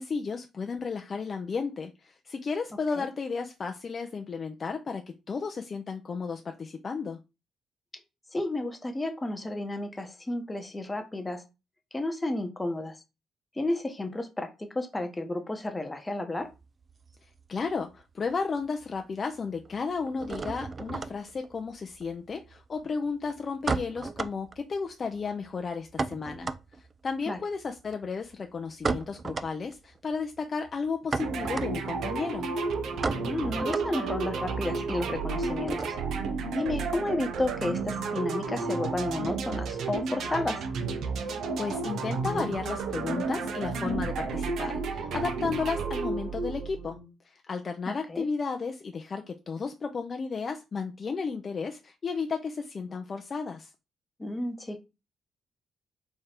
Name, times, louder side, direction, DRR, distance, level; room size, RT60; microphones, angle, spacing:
voice 1, 0.0-7.2 17.5-26.5 26.8-32.5 41.3-47.0 47.2-53.7, left 5 dB, 40° left, 0.5 m, -33 dB
voice 2, 8.3-11.4 11.9-13.0 13.6-16.5 27.3-27.4 33.2-36.0 36.5-40.6 47.9-48.3 54.2-54.8, left 2 dB, 15° left, 0.9 m, -32 dB
sound 1, 16.4-18.0 18.3-19.0 19.2-36.3, right 4 dB, 35° right, 0.3 m, -36 dB
sound 2, 31.2-47.1, right 4 dB, 75° right, 0.8 m, -32 dB
3.6 x 3.3 x 4.4 m
cardioid pair, 90°, 0 cm